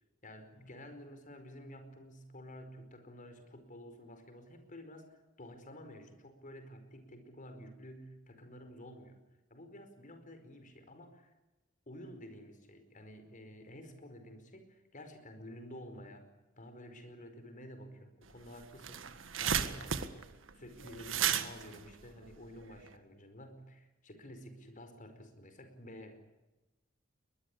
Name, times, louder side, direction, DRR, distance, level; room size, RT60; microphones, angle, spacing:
voice 1, 0.2-9.2 9.5-11.3 11.9-16.3 16.6-26.2, equal, 40° left, 8 dB, 4.9 m, -51 dB
sound 1, 18.3-18.4 18.6-22.9, right 8 dB, 70° right, 1.6 m, -34 dB
22.0 x 21.0 x 8.5 m, 1.1 s
head